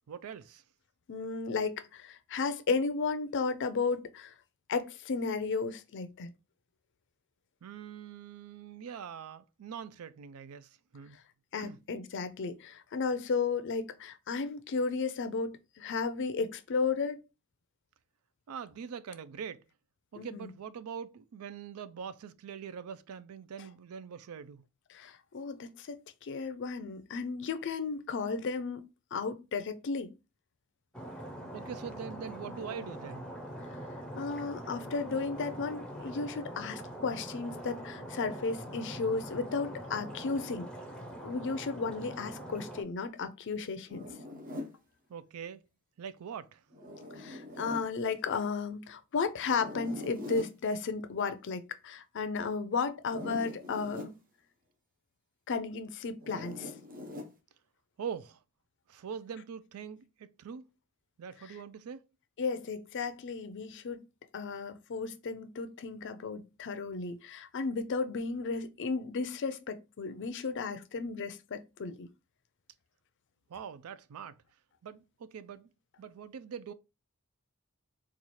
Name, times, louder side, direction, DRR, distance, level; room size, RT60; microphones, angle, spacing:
voice 1, 0.1-0.6 7.6-11.2 11.6-11.8 18.5-19.6 20.1-24.6 31.5-33.3 45.1-45.6 46.0-46.6 58.0-58.4 58.9-60.7 61.2-62.1 73.5-74.4 74.8-75.7 76.0-76.7, right 7 dB, 80° right, 0.4 m, -43 dB
voice 2, 1.1-4.3 4.7-6.3 11.5-17.2 20.2-20.5 24.9-28.8 29.1-30.1 34.1-40.7 41.2-44.1 47.2-54.2 55.5-56.7 62.4-64.0 64.3-72.1, left 4 dB, 55° left, 0.5 m, -34 dB
Stream, 30.9-42.8, right 1 dB, 5° left, 0.6 m, -43 dB
Zipper (clothing), 43.9-44.8 46.7-47.9 49.5-50.6 53.0-54.1 56.2-57.3, left 2 dB, 40° right, 0.9 m, -43 dB
4.1 x 2.4 x 3.0 m
head